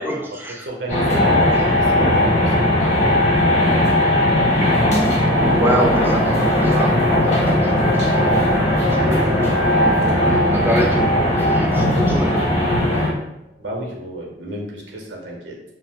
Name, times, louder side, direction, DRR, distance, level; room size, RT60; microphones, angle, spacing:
voice 1, 0.0-0.7 5.5-13.0, right 1 dB, 10° right, 0 dB, 0.3 m, -27 dB
voice 2, 0.6-2.9 13.6-15.6, right 1 dB, 85° right, 0 dB, 0.7 m, -32 dB
sound 1, 0.9-13.1, left 1 dB, 40° left, 0.8 m, -17 dB
sound 2, 5.3-13.3, left 5 dB, 65° left, 0.4 m, -32 dB
2.6 x 2.0 x 3.3 m, 0.86 s
head